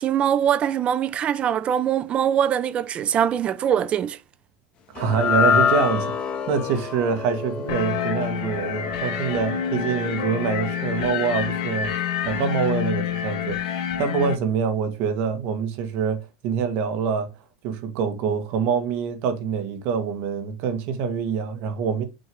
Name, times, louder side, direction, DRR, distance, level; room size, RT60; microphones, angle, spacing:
voice 1, 0.0-4.2, right 9 dB, 35° right, 0.5 m, -22 dB
voice 2, 4.9-11.9 12.2-17.3 17.6-22.0, right 6 dB, 60° right, 1.8 m, -25 dB
sound 1, 5.0-11.4, left 7 dB, 35° left, 1.5 m, -27 dB
sound 2, 7.7-14.4, left 9 dB, 70° left, 1.2 m, -28 dB
6.6 x 3.5 x 4.7 m
supercardioid pair, 115°, 3 cm